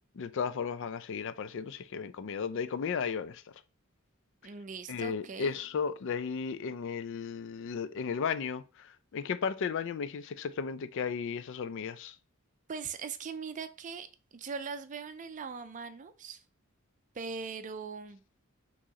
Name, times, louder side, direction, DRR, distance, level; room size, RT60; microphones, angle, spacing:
voice 1, 0.2-3.4 4.9-12.2, left 6 dB, 60° left, 0.4 m, -34 dB
voice 2, 4.4-5.5 12.7-14.1 14.3-16.4 17.1-18.2, right 5 dB, 40° right, 0.4 m, -40 dB
6.1 x 3.0 x 2.9 m
head